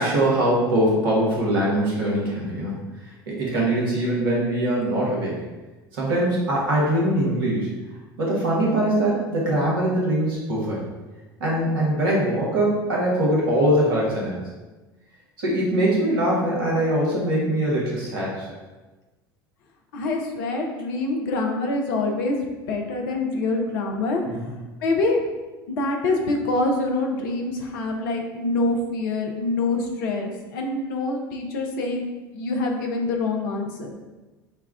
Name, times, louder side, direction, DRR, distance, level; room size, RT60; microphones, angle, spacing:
voice 1, 0.0-2.8 3.3-5.4 5.9-7.7 8.2-10.8 11.4-14.4 15.4-18.5 24.3-24.5, right 1 dB, 65° right, -4 dB, 1.3 m, -22 dB
voice 2, 19.9-22.4 22.7-24.2 24.8-25.2 25.7-32.0 32.3-33.9, left 2 dB, 60° left, 2 dB, 0.8 m, -25 dB
5.8 x 2.3 x 3.4 m, 1.2 s
figure-of-eight pair, 70°, 12 cm